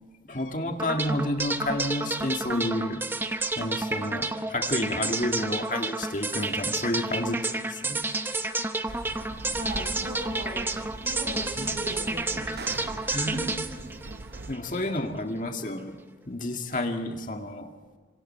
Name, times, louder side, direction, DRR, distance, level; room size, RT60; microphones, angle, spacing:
voice 1, 0.2-3.0 3.6-8.0 11.6-11.7 13.1-13.6 14.5-16.0 16.3-17.7, left 1 dB, 45° left, 4 dB, 2.0 m, -30 dB
sound 1, 0.8-14.9, right 2 dB, 10° right, 0.8 m, -30 dB
sound 2, 8.9-14.5, right 2 dB, 65° right, 0.7 m, -41 dB
voice 2, 9.5-10.6 11.0-12.6 13.1-13.4, right 1 dB, 35° right, 0 dB, 6.6 m, -37 dB
27.0 x 25.5 x 4.5 m, 1.5 s
head